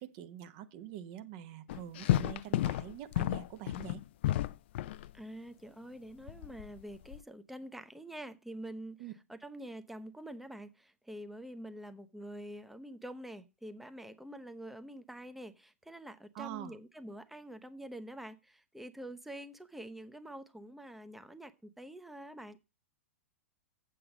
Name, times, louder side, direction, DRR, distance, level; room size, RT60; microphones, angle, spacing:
voice 1, 0.0-4.0 9.0-9.1 16.3-16.7, right 11 dB, 45° right, 1.0 m, -45 dB
sound 1, 1.7-5.1 6.3-7.2, left 13 dB, 55° left, 0.5 m, -32 dB
voice 2, 5.1-9.0 9.3-22.6, right 1 dB, 5° right, 0.8 m, -46 dB
7.9 x 7.7 x 5.1 m
figure-of-eight pair, 100°, 7 cm